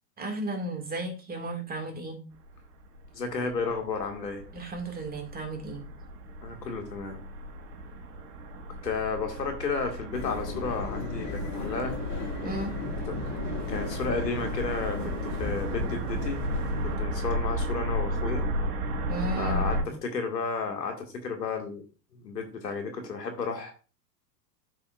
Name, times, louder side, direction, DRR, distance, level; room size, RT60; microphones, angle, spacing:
voice 1, 0.2-2.2 4.5-5.8 12.4-12.7 19.1-20.0, right 2 dB, 20° right, 3 dB, 2.1 m, -34 dB
sound 1, 2.4-19.8, equal, 65° right, 1.6 m, -34 dB
voice 2, 3.1-4.4 6.4-7.2 8.8-12.0 13.1-13.2 13.7-16.4 16.8-18.5 19.4-21.9 22.1-23.7, left 4 dB, 85° left, 4 dB, 2.0 m, -32 dB
sound 2, 10.1-17.0, left 5 dB, 35° left, 1.5 m, -37 dB
10.5 x 5.6 x 2.4 m, 0.35 s
hypercardioid pair, 95°, 48 cm